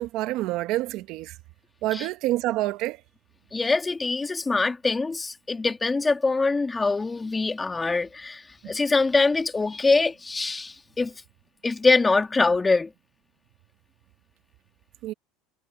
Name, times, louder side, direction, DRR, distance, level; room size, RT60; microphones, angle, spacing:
voice 1, 0.0-1.4 1.8-3.0 15.0-15.1, right 16 dB, 60° right, 1.2 m, -27 dB
voice 2, 3.5-11.1 11.6-12.9, left 3 dB, 15° left, 2.0 m, -24 dB
supercardioid pair, 125°, 0 cm